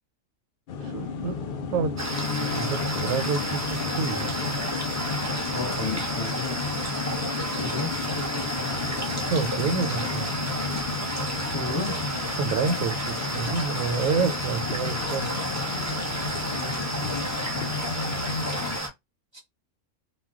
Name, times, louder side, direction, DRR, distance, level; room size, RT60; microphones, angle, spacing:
sound 1, 0.7-18.8, left 5 dB, 70° left, 0.5 m, -33 dB
voice 1, 0.8-2.0 2.4-4.6 9.3-10.3 12.4-15.3, right 5 dB, 85° right, 1.0 m, -29 dB
sound 2, 2.0-18.9, right 1 dB, 25° right, 0.3 m, -31 dB
voice 2, 5.5-6.6 7.6-9.1 11.5-12.0 14.8-14.9 16.5-17.4 19.3-19.4, left 3 dB, 25° left, 0.8 m, -34 dB
2.2 x 2.2 x 3.5 m
omnidirectional pair, 1.4 m